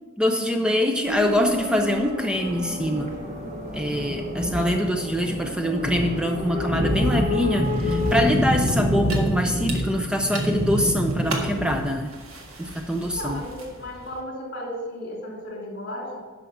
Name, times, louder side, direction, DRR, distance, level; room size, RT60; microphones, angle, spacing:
voice 1, 0.2-3.1 3.7-12.1 12.6-13.4, equal, 5° right, 4 dB, 0.5 m, -24 dB
sound 1, 1.0-8.2, left 3 dB, 35° right, 1.6 m, -32 dB
sound 2, 2.3-11.8, equal, 50° right, 3.4 m, -27 dB
sound 3, 7.6-14.2, right 2 dB, 75° right, 1.7 m, -39 dB
voice 2, 13.0-16.2, equal, 55° left, -1 dB, 3.1 m, -34 dB
11.0 x 6.2 x 5.9 m, 1.3 s
head